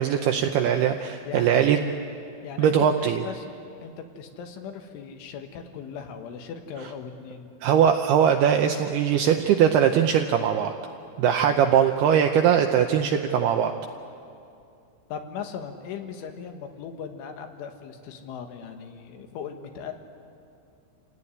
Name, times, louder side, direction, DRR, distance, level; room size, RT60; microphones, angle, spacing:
voice 1, 0.0-1.8 2.6-3.2 7.6-10.7 11.2-13.7, right 8 dB, 80° right, 5 dB, 2.3 m, -21 dB
voice 2, 1.3-1.6 2.4-7.5 15.1-19.9, left 7 dB, 80° left, 5 dB, 3.9 m, -38 dB
28.0 x 17.5 x 9.9 m, 2.5 s
omnidirectional pair, 5.6 m